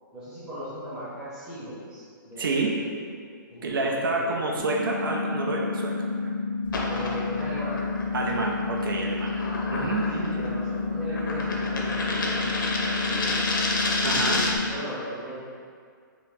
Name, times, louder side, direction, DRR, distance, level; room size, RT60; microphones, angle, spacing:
voice 1, 0.1-3.0 3.5-4.4 6.9-7.9 9.7-9.9 10.3-13.4 14.2-15.3, equal, 5° right, -13 dB, 0.7 m, -38 dB
voice 2, 2.4-2.8 3.6-6.3 8.1-9.4 9.7-10.5 14.0-14.5, right 3 dB, 80° right, 0 dB, 0.6 m, -28 dB
sound 1, 4.6-14.6, left 4 dB, 20° left, 0.4 m, -30 dB
sound 2, 6.6-14.7, left 2 dB, 70° left, 0.6 m, -30 dB
2.9 x 2.8 x 3.5 m, 2.1 s
hypercardioid pair, 170°, 11 cm